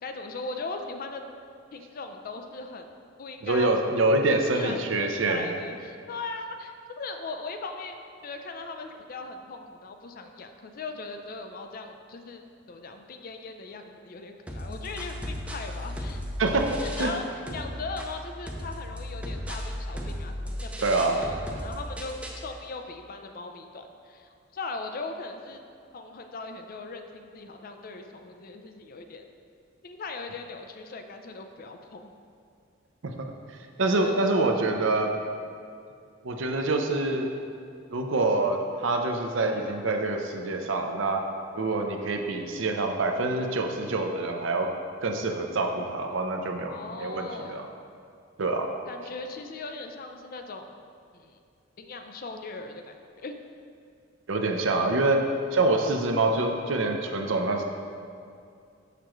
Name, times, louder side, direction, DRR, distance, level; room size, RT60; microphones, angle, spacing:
voice 1, 0.0-1.2 1.7-2.9 3.2-3.8 4.5-12.4 12.7-16.2 16.8-17.3 17.5-25.6 25.9-29.2 29.8-32.1 33.9-35.0 46.7-47.7 48.9-50.7 51.1-51.4 51.8-53.4, left 3 dB, 45° left, 5 dB, 0.5 m, -39 dB
voice 2, 3.4-5.6 16.4-16.7 17.0-17.1 20.8-21.2 33.2-33.3 33.8-35.1 36.2-37.3 37.9-41.2 41.5-44.7 45.0-47.7 48.4-48.7 54.3-55.2 55.5-57.6, right 2 dB, 70° right, 3 dB, 0.6 m, -26 dB
sound 1, 14.5-17.2 17.5-22.5, equal, 5° right, 0.5 m, -36 dB
6.7 x 6.0 x 3.1 m, 2.4 s
head